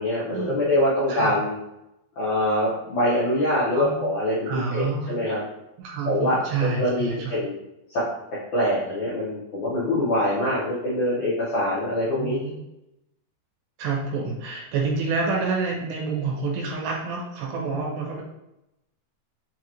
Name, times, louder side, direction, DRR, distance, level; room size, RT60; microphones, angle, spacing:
voice 1, 0.0-1.5 2.2-5.4 6.0-6.4 6.8-7.6 7.9-8.0 8.5-12.4, left 1 dB, 85° left, -9 dB, 1.7 m, -24 dB
voice 2, 3.7-4.0 4.5-5.2 5.8-7.3 12.2-12.6 13.8-18.2, right 4 dB, 80° right, -2 dB, 2.8 m, -28 dB
6.7 x 2.5 x 2.9 m, 0.88 s
omnidirectional pair, 5.1 m